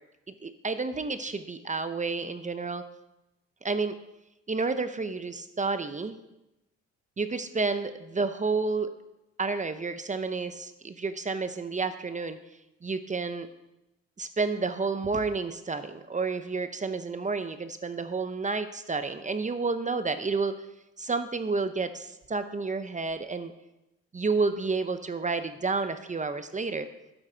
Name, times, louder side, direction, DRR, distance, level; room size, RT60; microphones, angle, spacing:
voice 1, 0.3-2.8 3.6-4.0 4.5-6.2 7.2-8.9 9.4-12.4 12.8-13.5 14.2-20.7 21.0-23.5 24.1-26.9, right 4 dB, 25° right, 10 dB, 0.7 m, -30 dB
12.0 x 8.0 x 4.5 m, 0.93 s
cardioid pair, 90°, 30 cm